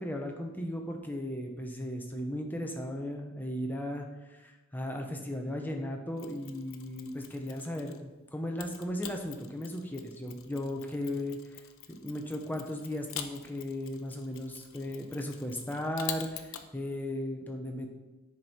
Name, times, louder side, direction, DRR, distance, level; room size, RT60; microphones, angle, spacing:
voice 1, 0.0-11.4 11.9-17.9, left 1 dB, 10° left, 2 dB, 0.8 m, -36 dB
Mechanisms, 6.2-8.1 8.6-16.7, left 9 dB, 85° left, 0.6 m, -46 dB
9.8 x 4.5 x 4.5 m, 1.1 s
head